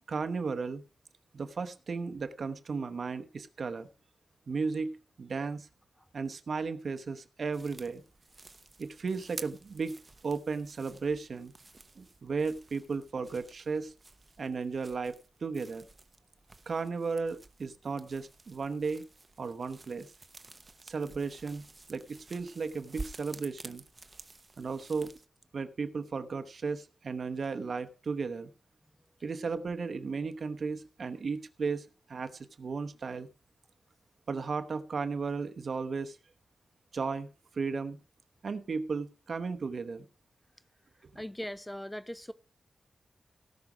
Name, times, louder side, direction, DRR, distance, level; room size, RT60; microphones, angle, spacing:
voice 1, 0.1-0.8 1.3-3.9 4.5-5.7 6.1-8.0 8.8-11.5 12.0-13.9 14.4-15.8 16.7-19.0 19.4-20.1 20.9-21.6 21.9-23.8 24.6-25.1 25.5-28.5 29.2-31.8 32.1-33.3 34.3-36.2 36.9-37.3 37.6-38.0 38.4-40.0, right 4 dB, 65° right, 0.9 m, -35 dB
sound 1, 7.5-25.3, right 3 dB, 30° right, 0.9 m, -51 dB
voice 2, 41.1-42.3, equal, 10° left, 0.6 m, -39 dB
17.5 x 6.1 x 5.0 m
wide cardioid pair, 105°, 0 cm